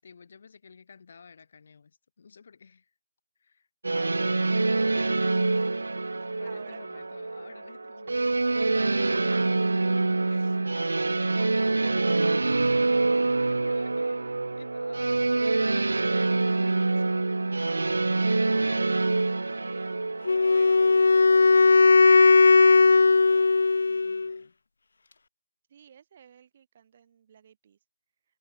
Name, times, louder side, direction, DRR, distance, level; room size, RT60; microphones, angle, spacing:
voice 1, 0.0-2.9 3.4-3.7 3.9-4.9 6.3-8.3 10.3-14.3 14.6-16.3 16.8-17.4 23.8-24.5, left 5 dB, 50° left, 6.9 m, -53 dB
sound 1, 3.8-21.9, right 3 dB, 75° right, 1.7 m, -26 dB
voice 2, 6.4-7.1 8.4-9.0 9.3-9.4 11.4-12.0 19.6-23.5 25.7-27.8, right 8 dB, 35° right, 6.6 m, -52 dB
Wind instrument woodwind instrument, 20.3-24.4, left 4 dB, 65° left, 0.3 m, -18 dB
figure-of-eight pair, 155°, 0 cm